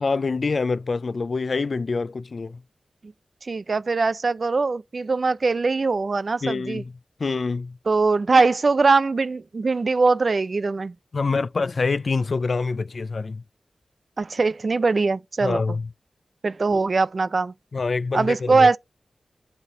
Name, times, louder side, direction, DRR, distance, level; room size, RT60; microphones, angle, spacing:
voice 1, 0.0-2.6 6.4-6.9 7.2-7.8 11.1-13.4 15.4-15.9 16.7-16.8 17.7-18.7, left 4 dB, 60° left, 0.3 m, -26 dB
voice 2, 3.4-6.8 7.9-10.9 14.2-15.6 16.4-17.5 18.1-18.8, right 4 dB, 55° right, 0.4 m, -21 dB
8.2 x 3.3 x 3.6 m
wide cardioid pair, 100°, 0 cm